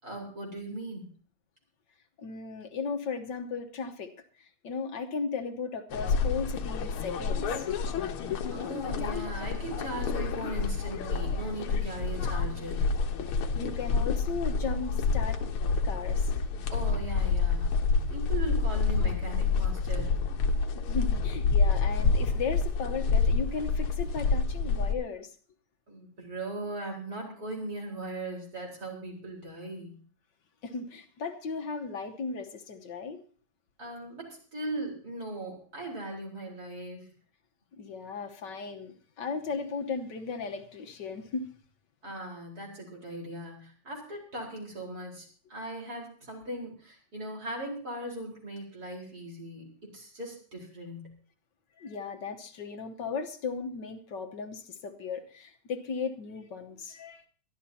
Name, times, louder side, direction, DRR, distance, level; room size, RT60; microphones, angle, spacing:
voice 1, 0.0-1.1 8.5-12.9 16.7-17.8 18.1-20.2 25.9-30.0 33.8-37.1 42.0-51.2, right 1 dB, 45° right, -1 dB, 4.9 m, -39 dB
voice 2, 2.2-4.1 4.4-7.7 13.5-15.4 15.8-16.3 20.9-25.3 30.6-33.2 37.8-41.5 51.8-57.2, left 5 dB, 60° left, 5 dB, 1.7 m, -36 dB
sound 1, 5.9-24.9, left 4 dB, 80° left, 2.0 m, -28 dB
23.0 x 12.5 x 2.8 m, 0.42 s
omnidirectional pair, 2.4 m